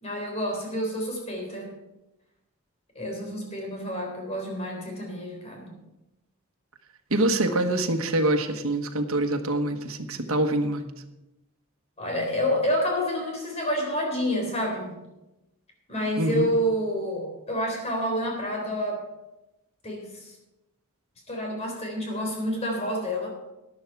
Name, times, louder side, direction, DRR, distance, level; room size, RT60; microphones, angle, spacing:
voice 1, 0.0-1.7 3.0-5.7 12.0-15.0 15.9-19.1 19.8-20.4 21.3-23.3, equal, 30° left, 1 dB, 3.7 m, -28 dB
voice 2, 7.1-10.9 16.0-16.5, right 1 dB, 75° right, 6 dB, 1.3 m, -25 dB
13.0 x 11.5 x 4.7 m, 0.97 s
head